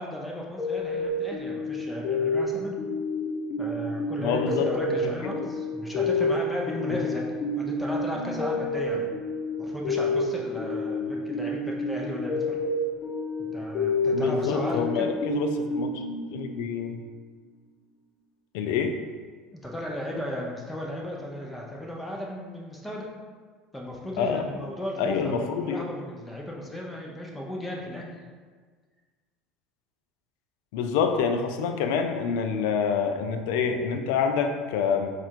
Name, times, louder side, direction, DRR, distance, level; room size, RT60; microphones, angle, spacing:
voice 1, 0.0-2.8 3.6-7.2 7.6-9.1 9.6-12.6 13.4-15.1 19.5-23.1 23.7-28.1, equal, 5° left, -2 dB, 0.8 m, -35 dB
sound 1, 0.6-16.9, left 2 dB, 45° left, 1.0 m, -29 dB
voice 2, 4.2-5.1 5.4-5.5 6.9-7.0 14.1-16.0 16.3-17.0 18.5-18.9 24.2-24.4 25.0-25.8 30.7-35.1, left 6 dB, 75° left, 6 dB, 0.4 m, -27 dB
4.2 x 2.5 x 4.4 m, 1.5 s
supercardioid pair, 95°, 0 cm